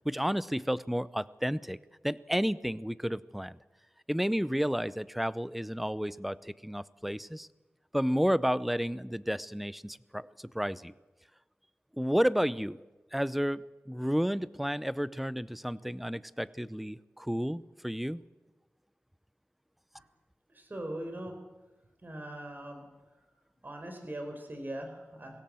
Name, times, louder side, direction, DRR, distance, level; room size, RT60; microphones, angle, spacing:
voice 1, 0.0-1.8 2.0-3.5 4.1-7.5 7.9-10.9 12.0-12.8 13.1-18.2, equal, 5° right, 17 dB, 0.6 m, -31 dB
voice 2, 20.5-21.4 22.0-22.8 23.6-25.4, right 1 dB, 40° right, 4 dB, 4.6 m, -40 dB
22.5 x 17.0 x 7.7 m, 1.1 s
wide cardioid pair, 80°, 5 cm